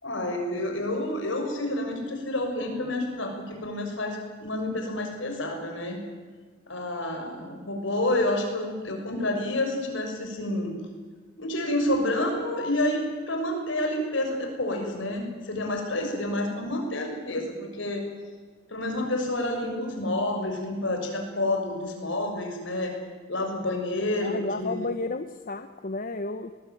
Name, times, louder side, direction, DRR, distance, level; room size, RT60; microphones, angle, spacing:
voice 1, 0.0-6.0 6.7-10.8 11.4-18.0 18.7-22.9 23.3-24.8, left 1 dB, 70° left, 3 dB, 6.4 m, -29 dB
voice 2, 24.2-26.5, left 3 dB, 45° left, 9 dB, 1.0 m, -32 dB
23.0 x 20.5 x 9.2 m, 1.5 s
head